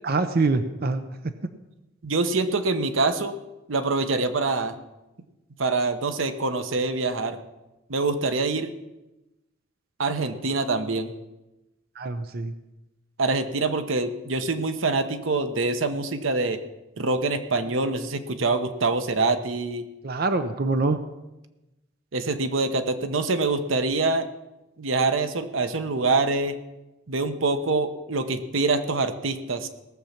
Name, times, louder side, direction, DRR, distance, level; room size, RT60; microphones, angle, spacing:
voice 1, 0.0-1.0 12.0-12.5 20.0-21.0, right 3 dB, 50° right, 9 dB, 0.7 m, -24 dB
voice 2, 2.0-3.4 3.7-4.8 5.6-7.4 7.9-8.7 10.0-11.1 13.2-16.6 17.0-19.9 22.1-24.3 24.8-26.6 27.1-29.7, right 3 dB, 85° right, 9 dB, 0.9 m, -25 dB
18.0 x 7.3 x 5.8 m, 1.0 s
head